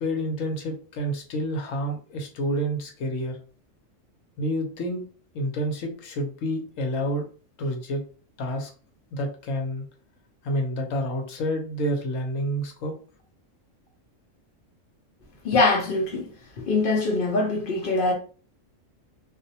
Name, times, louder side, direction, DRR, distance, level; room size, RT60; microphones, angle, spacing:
voice 1, 0.0-3.4 4.4-5.0 5.3-7.2 7.6-8.0 8.4-8.7 9.1-9.8 10.4-12.9, equal, 85° left, 1.0 m, -28 dB
voice 2, 15.4-16.3 16.7-18.1, left 3 dB, 55° left, 0.6 m, -23 dB
2.5 x 2.0 x 2.7 m
omnidirectional pair, 1.3 m